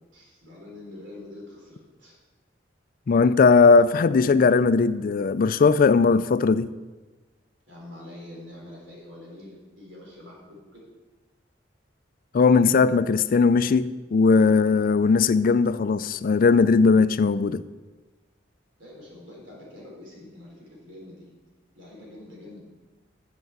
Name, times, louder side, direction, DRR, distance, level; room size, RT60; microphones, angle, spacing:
voice 1, 0.1-2.2 7.7-10.9 18.8-21.3 21.7-22.6, left 1 dB, 80° right, 3.9 m, -45 dB
voice 2, 3.1-6.7 12.3-17.6, left 4 dB, 50° left, 0.4 m, -19 dB
7.9 x 6.9 x 7.5 m
head